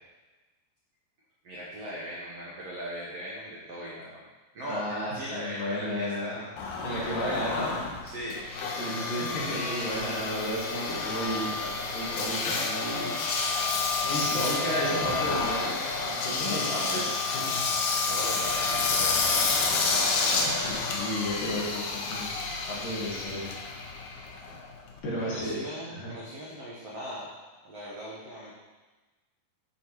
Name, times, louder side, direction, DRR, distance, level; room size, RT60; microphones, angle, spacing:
voice 1, 1.4-4.2 4.5-8.4 16.4-17.0 17.9-20.7 25.1-27.3 27.6-28.5, equal, 75° right, -6 dB, 1.4 m, -40 dB
voice 2, 4.7-6.4 6.8-7.8 8.8-11.6 11.9-13.2 14.0-17.6 20.2-22.3 22.7-23.5 25.0-25.6 25.9-26.1, equal, 60° left, -6 dB, 3.4 m, -33 dB
Engine, 6.6-25.0, left 4 dB, 85° left, 1.6 m, -29 dB
13.5 x 5.1 x 3.1 m, 1.2 s
omnidirectional pair, 4.8 m